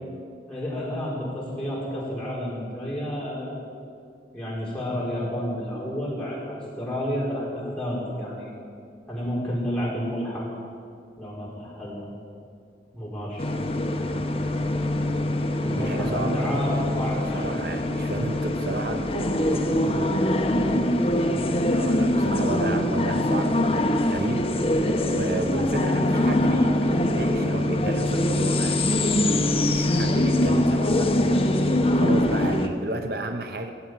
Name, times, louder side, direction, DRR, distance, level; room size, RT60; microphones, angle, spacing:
voice 1, 0.5-3.5 4.3-8.5 9.1-10.5 11.2-12.0 12.9-13.4 15.6-17.5, equal, 5° left, -7 dB, 4.6 m, -30 dB
sound 1, 13.4-32.7, left 1 dB, 35° left, 1.0 m, -23 dB
voice 2, 15.5-16.6 17.3-19.7 21.7-24.5 25.1-29.2 29.5-31.4 31.7-33.7, right 2 dB, 55° right, 7 dB, 0.7 m, -32 dB
18.0 x 8.1 x 9.6 m, 2.3 s
head